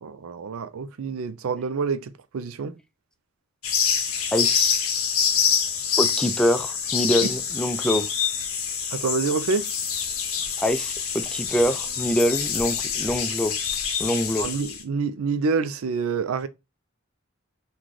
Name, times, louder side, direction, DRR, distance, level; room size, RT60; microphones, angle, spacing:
voice 1, 0.0-2.7 7.2-7.3 8.9-9.7 14.4-16.5, right 4 dB, 85° right, 0.4 m, -27 dB
sound 1, 3.6-14.8, left 7 dB, 80° left, 0.7 m, -26 dB
voice 2, 4.3-4.8 6.0-8.1 10.6-13.5 14.0-14.5, equal, 5° left, 0.3 m, -24 dB
3.9 x 2.3 x 3.1 m
head